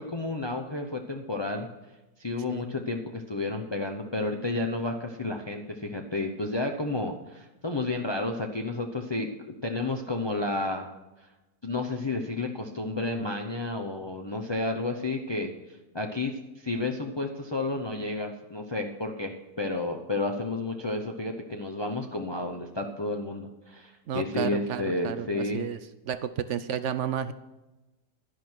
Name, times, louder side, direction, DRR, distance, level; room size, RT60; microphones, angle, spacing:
voice 1, 0.0-1.7 2.2-10.9 11.6-15.5 15.9-25.7, left 2 dB, 35° left, 3 dB, 0.4 m, -31 dB
voice 2, 24.1-25.8 26.1-27.3, right 9 dB, 80° right, 13 dB, 0.6 m, -32 dB
11.5 x 11.0 x 4.6 m, 1.0 s
omnidirectional pair, 1.9 m